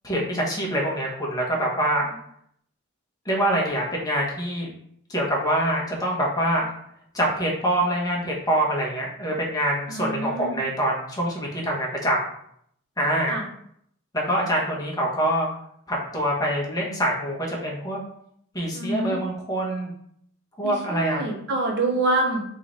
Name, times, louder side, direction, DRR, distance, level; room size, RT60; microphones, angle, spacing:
voice 1, 0.0-2.1 3.2-4.7 5.1-6.7 7.1-12.3 13.0-13.4 14.1-15.5 15.9-18.0 18.5-19.9 20.6-21.2, right 1 dB, 20° left, -2 dB, 1.2 m, -25 dB
voice 2, 9.9-10.6 13.3-13.4 18.7-19.2 20.6-22.4, right 2 dB, 55° right, 3 dB, 0.9 m, -26 dB
3.9 x 3.2 x 4.0 m, 0.68 s
head